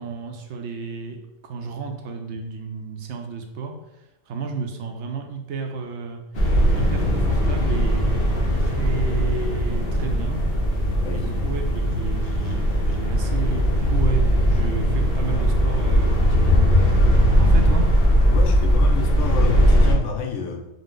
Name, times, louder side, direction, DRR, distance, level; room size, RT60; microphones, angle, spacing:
voice 1, 0.0-3.8 4.3-6.2 6.8-10.4 11.1-17.0 17.4-17.9, right 5 dB, 70° right, 4 dB, 0.8 m, -32 dB
sound 1, 6.3-19.9, equal, 50° left, 1.1 m, -19 dB
voice 2, 11.0-11.5 18.3-20.7, left 6 dB, 75° left, 2 dB, 1.0 m, -30 dB
5.0 x 2.1 x 3.7 m, 0.95 s
omnidirectional pair, 1.3 m